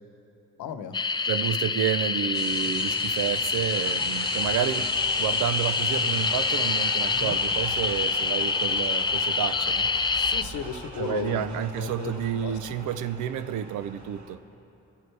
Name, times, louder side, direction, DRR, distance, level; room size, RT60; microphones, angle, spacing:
voice 1, 0.6-1.0 7.2-7.4 10.1-12.6, left 8 dB, 80° left, 9 dB, 1.0 m, -35 dB
sound 1, 0.9-10.4, left 4 dB, 15° left, 0.4 m, -26 dB
voice 2, 1.3-4.9 5.2-9.9 11.0-14.4, right 10 dB, 80° right, 12 dB, 0.7 m, -30 dB
sound 2, 2.3-14.3, right 3 dB, 65° right, 2.0 m, -39 dB
29.5 x 11.0 x 3.4 m, 2.8 s
cardioid pair, 90°, 30 cm